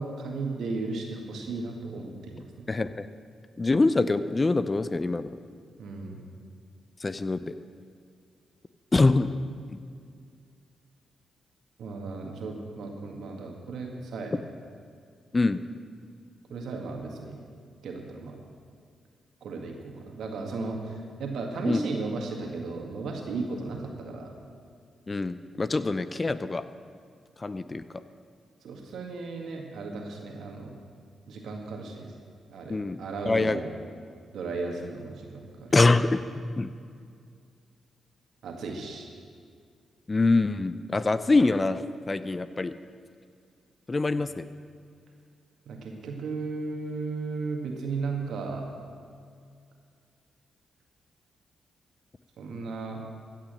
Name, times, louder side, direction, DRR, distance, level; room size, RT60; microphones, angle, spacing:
voice 1, 0.0-2.7 5.8-6.2 11.8-14.3 16.5-17.4 17.8-18.5 19.4-24.3 28.6-30.8 31.3-32.1 32.5-33.7 34.3-35.7 38.4-39.1 45.7-48.7 52.4-53.0, right 3 dB, 70° right, 1 dB, 1.9 m, -35 dB
voice 2, 2.7-3.1 3.6-5.4 7.0-7.5 8.9-9.3 9.7-9.8 15.3-15.6 21.6-21.8 25.1-26.6 27.4-27.8 32.7-33.0 33.3-33.6 35.7-36.7 40.1-42.7 43.9-44.5, left 3 dB, 35° left, 13 dB, 0.6 m, -25 dB
15.0 x 6.2 x 7.8 m, 2.3 s
hypercardioid pair, 40°, 0 cm